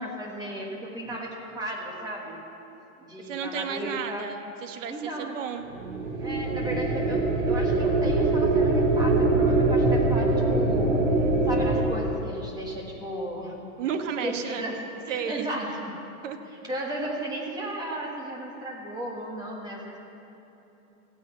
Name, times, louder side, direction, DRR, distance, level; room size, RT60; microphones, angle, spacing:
voice 1, 0.0-2.4 3.0-4.3 4.9-5.3 6.2-11.0 11.5-13.5 14.2-14.8 15.1-16.0 16.7-20.0, right 1 dB, 10° right, -1 dB, 1.4 m, -35 dB
voice 2, 3.2-5.7 13.8-14.6 15.1-15.5 16.2-16.4, right 7 dB, 55° right, 7 dB, 1.4 m, -33 dB
sound 1, 5.7-11.8, right 2 dB, 75° right, 3.0 m, -23 dB
15.0 x 9.5 x 8.1 m, 3.0 s
hypercardioid pair, 160°, 44 cm